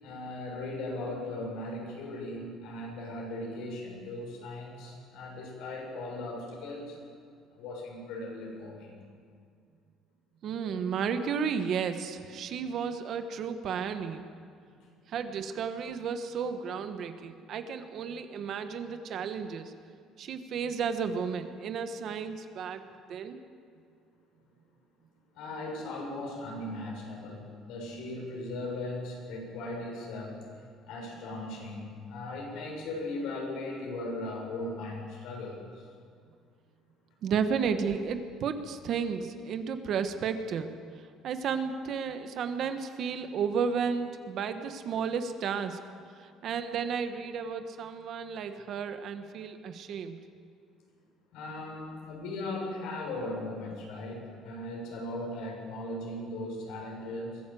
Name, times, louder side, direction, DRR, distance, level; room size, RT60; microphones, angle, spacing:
voice 1, 0.0-7.0 7.5-9.0 25.3-30.5 30.9-35.9 51.3-57.4, left 2 dB, 75° left, -1 dB, 7.2 m, -38 dB
voice 2, 10.4-14.3 15.1-19.7 20.2-23.4 37.2-40.7 41.2-45.8 46.2-50.2, right 6 dB, 45° right, 8 dB, 1.3 m, -33 dB
23.0 x 15.5 x 7.7 m, 2.2 s
cardioid pair, 160°, 0 cm